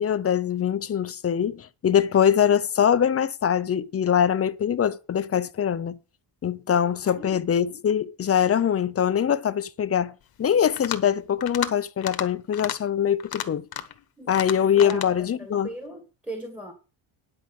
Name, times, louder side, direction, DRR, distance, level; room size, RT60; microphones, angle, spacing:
voice 1, 0.0-6.0 6.4-13.7 14.3-15.7, left 8 dB, 30° left, 0.6 m, -23 dB
voice 2, 6.7-7.4 14.2-16.7, right 1 dB, 5° right, 1.7 m, -40 dB
sound 1, 10.6-11.1 11.4-11.7 12.0-12.3 12.5-12.8 13.2-14.0 14.3-15.1, left 10 dB, 45° left, 1.2 m, -32 dB
10.5 x 5.0 x 7.9 m
cardioid pair, 135°, 50 cm